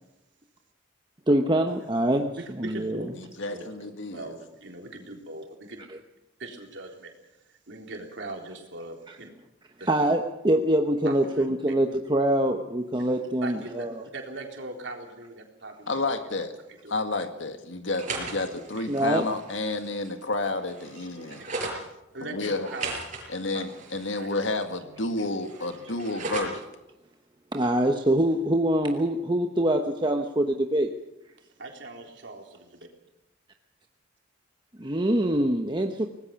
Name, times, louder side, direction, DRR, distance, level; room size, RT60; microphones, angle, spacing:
voice 1, 1.3-3.0 5.9-6.0 9.9-14.0 18.9-19.3 27.5-30.9 34.8-36.1, right 1 dB, 25° right, 4 dB, 1.0 m, -24 dB
voice 2, 2.4-3.1 3.5-3.7 4.1-5.8 6.4-7.1 7.7-9.3 9.8-9.9 11.0-11.5 13.4-13.9 14.1-16.5 16.8-16.9 18.8-18.9 21.4-21.5 22.1-23.0 23.5-23.7 24.1-24.3 31.6-32.9, right 2 dB, 65° right, 2 dB, 3.9 m, -40 dB
voice 3, 3.2-4.3 15.9-16.5 16.9-21.4 22.3-22.7 23.3-26.6, left 2 dB, 75° left, 7 dB, 1.9 m, -30 dB
sound 1, 17.8-21.8 22.4-24.8 25.1-26.7, right 3 dB, 40° right, 5.4 m, -37 dB
25.0 x 19.0 x 5.9 m, 0.96 s
head